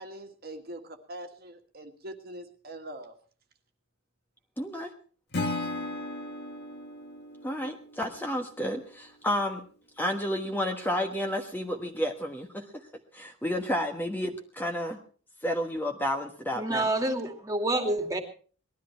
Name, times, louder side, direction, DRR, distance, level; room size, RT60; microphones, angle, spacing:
voice 1, 0.0-3.2, right 1 dB, 50° right, 4 dB, 1.7 m, -43 dB
voice 2, 4.6-4.9 7.4-9.6 10.0-12.8 13.1-15.0 15.4-16.9, equal, 10° left, 3 dB, 1.3 m, -31 dB
Acoustic guitar / Strum, 5.3-8.5, left 2 dB, 55° left, 2.0 m, -36 dB
voice 3, 16.5-18.2, right 1 dB, 15° right, 4 dB, 2.4 m, -28 dB
19.5 x 13.0 x 4.5 m, 0.41 s
head